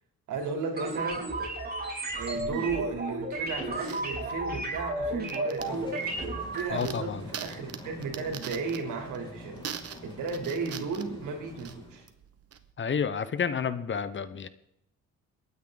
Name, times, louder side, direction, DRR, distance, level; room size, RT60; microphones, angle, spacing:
voice 1, 0.3-1.2 2.2-5.9 6.5-9.7 10.0-12.1, right 4 dB, 80° right, 3 dB, 3.5 m, -34 dB
sound 1, 0.8-6.7, right 2 dB, 30° right, 4.2 m, -33 dB
sound 2, 3.3-12.7, right 8 dB, 55° right, 1.3 m, -44 dB
sound 3, 5.6-12.0, left 1 dB, 15° left, 4.9 m, -46 dB
voice 2, 6.7-7.2 12.8-14.5, left 6 dB, 40° left, 14 dB, 1.0 m, -30 dB
22.5 x 9.7 x 4.0 m, 0.81 s
cardioid pair, 80°, 30 cm